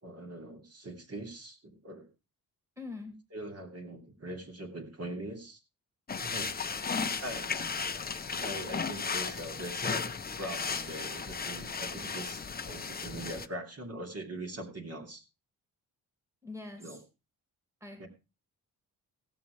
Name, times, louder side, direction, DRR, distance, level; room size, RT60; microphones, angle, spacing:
voice 1, 0.0-2.1 3.3-5.6 6.1-6.7 7.2-7.7 8.4-10.1 10.4-15.2 16.8-17.0 18.0-18.1, right 1 dB, 40° right, 3 dB, 2.9 m, -42 dB
voice 2, 2.8-3.1 6.9-7.1 16.4-17.0 17.8-18.0, left 3 dB, 10° right, 5 dB, 2.5 m, -43 dB
sound 1, 6.1-13.5, left 5 dB, 25° left, 0.8 m, -35 dB
16.5 x 7.0 x 4.6 m, 0.30 s
cardioid pair, 100°, 36 cm